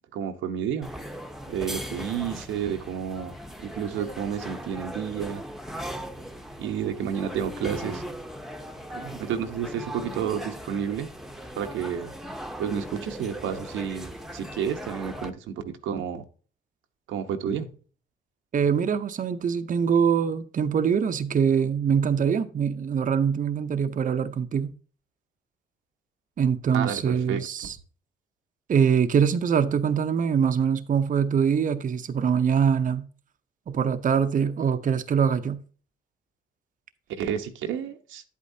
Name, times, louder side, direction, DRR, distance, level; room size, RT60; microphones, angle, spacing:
voice 1, 0.1-0.9 1.5-3.3 3.6-5.4 6.6-8.0 8.9-11.1 11.5-12.1 12.6-16.2 17.1-17.7 26.7-27.8 37.1-38.2, right 8 dB, 85° right, 1.0 m, -31 dB
sound 1, 0.8-15.3, equal, ahead, 1.0 m, -38 dB
voice 2, 18.5-24.7 26.4-27.8 28.7-33.1 33.7-35.6, right 7 dB, 40° right, 0.7 m, -23 dB
10.5 x 8.4 x 2.8 m
cardioid pair, 90°, 20 cm